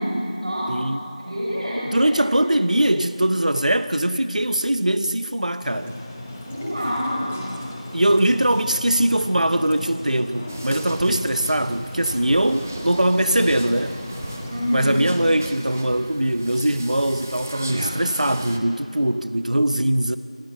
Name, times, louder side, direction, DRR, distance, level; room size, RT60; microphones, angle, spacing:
voice 1, 0.0-0.8 1.2-2.2 6.5-7.4 14.5-15.0, equal, 50° right, -5 dB, 5.4 m, -27 dB
voice 2, 0.7-1.1 1.9-6.0 7.9-14.0 14.7-20.2, right 1 dB, 75° right, 12 dB, 0.8 m, -21 dB
sound 1, 5.6-15.3, left 1 dB, 5° left, 1.0 m, -36 dB
sound 2, 10.5-18.6, right 1 dB, 20° right, 0.8 m, -36 dB
26.0 x 12.5 x 8.2 m, 2.5 s
figure-of-eight pair, 175°, 4 cm